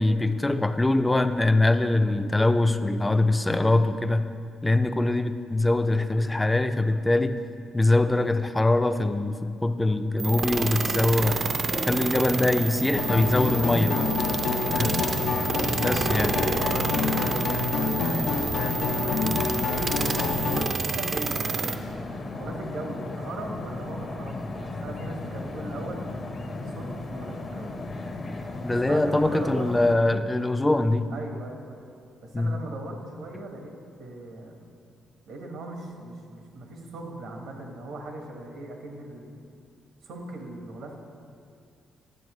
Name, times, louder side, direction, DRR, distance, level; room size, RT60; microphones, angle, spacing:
voice 1, 0.0-4.3 4.6-7.4 7.7-11.4 11.9-14.0 14.8-15.0 15.7-16.4 28.6-31.1 32.3-32.5, left 2 dB, 15° left, 9 dB, 0.4 m, -23 dB
sound 1, 10.2-30.0, left 2 dB, 40° left, 0.7 m, -36 dB
sound 2, 10.2-21.8, right 5 dB, 45° right, 0.5 m, -30 dB
sound 3, 13.0-20.7, left 5 dB, 75° left, 0.5 m, -27 dB
voice 2, 13.9-15.0 16.6-19.8 20.4-26.0 26.4-27.8 28.8-29.7 31.1-31.9 32.2-33.7 34.0-34.6 35.3-39.5 40.0-41.0, right 2 dB, 80° right, 1 dB, 1.3 m, -39 dB
10.5 x 7.1 x 3.1 m, 2.4 s
cardioid pair, 90°, 0 cm